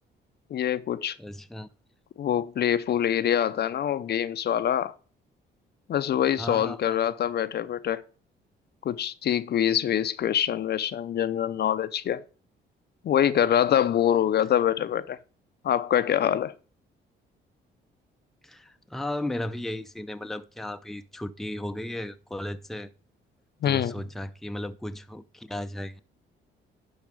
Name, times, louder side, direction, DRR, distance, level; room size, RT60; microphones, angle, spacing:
voice 1, 0.5-1.2 2.2-4.9 5.9-8.0 8.8-12.2 13.0-15.2 15.6-16.5 23.6-23.9, left 10 dB, 55° left, 0.6 m, -25 dB
voice 2, 1.2-1.7 6.4-7.0 18.4-22.9 23.6-26.0, left 1 dB, ahead, 0.6 m, -35 dB
11.0 x 4.2 x 4.9 m
cardioid pair, 90°, 20 cm